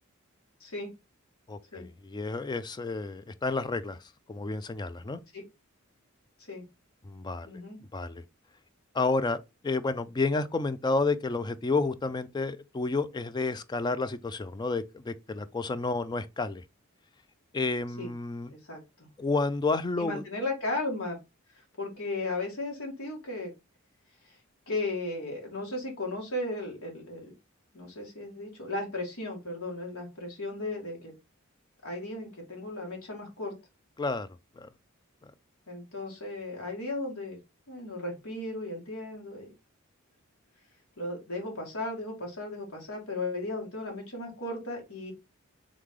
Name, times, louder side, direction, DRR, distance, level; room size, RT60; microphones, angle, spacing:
voice 1, 1.5-5.2 7.0-7.6 7.9-8.2 8.9-16.6 17.5-18.5 19.2-20.2 34.0-34.3 34.6-34.7 35.2-35.3, left 3 dB, 20° left, 0.3 m, -30 dB
voice 2, 7.4-7.8 18.0-18.1 18.5-19.1 20.0-21.2 21.5-23.5 24.2-24.4 24.7-27.3 27.7-31.1 31.8-33.5 35.7-37.4 37.7-39.5 41.0-45.1, left 2 dB, 80° left, 1.7 m, -35 dB
3.7 x 3.2 x 3.6 m
head